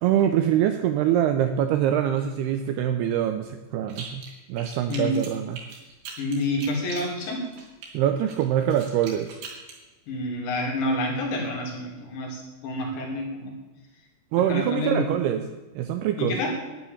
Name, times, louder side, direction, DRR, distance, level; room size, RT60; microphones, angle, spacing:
voice 1, 0.0-4.2 4.5-5.6 7.9-9.3 14.3-15.4 15.8-16.4, right 10 dB, 90° right, 8 dB, 2.3 m, -24 dB
sound 1, 3.9-4.3 4.6-7.9 8.3-9.8, right 5 dB, 65° right, 4.4 m, -41 dB
voice 2, 6.2-7.4 10.1-13.5 14.5-15.1 16.2-16.5, left 2 dB, 70° left, -1 dB, 5.2 m, -28 dB
12.0 x 10.0 x 7.2 m, 1.2 s
omnidirectional pair, 5.3 m